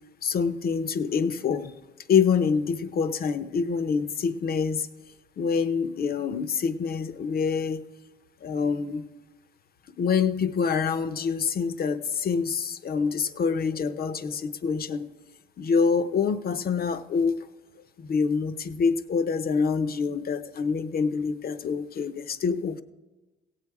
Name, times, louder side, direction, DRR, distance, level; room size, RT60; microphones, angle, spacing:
voice 1, 0.2-1.8 2.1-4.9 5.4-7.8 8.4-9.0 10.0-15.1 15.6-17.4 18.0-22.8, left 5 dB, 50° left, 12 dB, 0.7 m, -26 dB
16.5 x 7.4 x 4.7 m, 1.1 s
cardioid pair, 90°, 20 cm